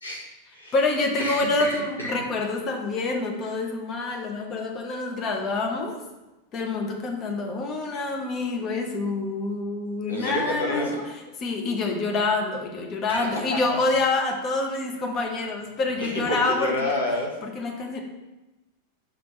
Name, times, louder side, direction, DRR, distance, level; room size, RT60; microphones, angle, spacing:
voice 1, 0.0-0.7 1.2-2.2 10.1-11.1 13.1-13.8 16.0-17.3, left 1 dB, 80° left, -2 dB, 1.1 m, -29 dB
voice 2, 0.7-6.0 6.5-10.9 11.4-16.9 17.4-18.0, left 3 dB, 30° left, 2 dB, 0.9 m, -27 dB
6.0 x 3.3 x 5.3 m, 1.1 s
figure-of-eight pair, 90°, 0 cm